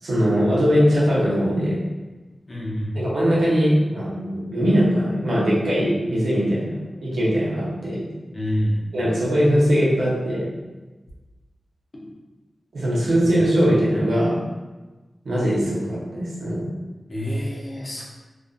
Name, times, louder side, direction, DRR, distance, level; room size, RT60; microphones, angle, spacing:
voice 1, 0.0-1.8 2.9-8.1 8.9-10.5 12.7-14.4 15.2-16.7, equal, 90° right, -7 dB, 0.8 m, -21 dB
voice 2, 2.5-3.0 8.3-8.8 17.1-18.1, equal, 50° left, -4 dB, 0.7 m, -26 dB
2.5 x 2.4 x 2.3 m, 1.2 s
wide cardioid pair, 75°, 0 cm